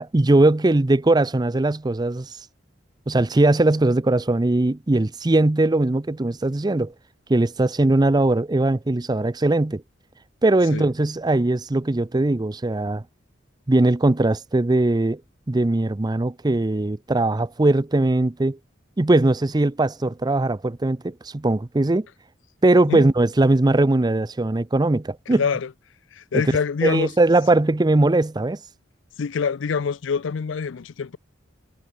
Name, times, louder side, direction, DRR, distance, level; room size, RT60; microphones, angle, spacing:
voice 1, 0.0-2.3 3.1-6.9 7.3-9.8 10.4-13.0 13.7-15.2 15.5-18.6 19.0-22.1 22.6-25.4 26.3-26.4 26.8-28.6, right 2 dB, 20° right, 0.5 m, -20 dB
voice 2, 25.3-25.7 26.1-27.1 29.2-31.2, left 6 dB, 75° left, 0.5 m, -25 dB
head